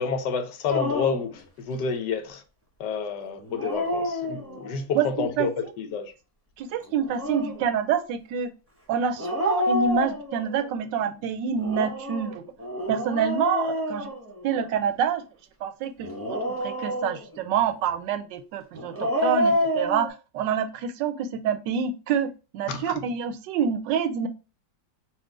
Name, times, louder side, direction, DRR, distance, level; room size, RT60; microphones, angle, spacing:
voice 1, 0.0-2.4 2.8-5.5 5.8-6.1 22.7-22.9, left 5 dB, 70° left, 1.2 m, -29 dB
Dog, 0.7-1.3 3.4-4.8 6.9-7.7 9.2-10.6 11.6-14.8 16.0-17.4 18.7-20.1, equal, 10° right, 0.7 m, -28 dB
voice 2, 4.9-5.5 6.6-8.5 8.9-12.4 12.9-14.1 14.4-15.2 15.6-24.3, right 7 dB, 80° right, 1.2 m, -27 dB
4.4 x 2.4 x 4.7 m
omnidirectional pair, 2.0 m